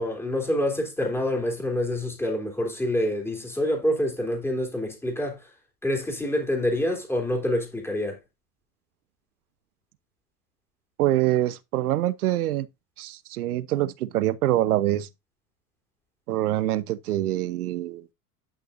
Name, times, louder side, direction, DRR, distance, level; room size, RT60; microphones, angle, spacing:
voice 1, 0.0-5.5 5.8-8.2, left 1 dB, 5° left, 3.1 m, -27 dB
voice 2, 11.0-12.7 13.0-15.1 16.3-18.1, right 14 dB, 75° right, 0.9 m, -25 dB
11.0 x 6.0 x 2.6 m
hypercardioid pair, 95°, 45 cm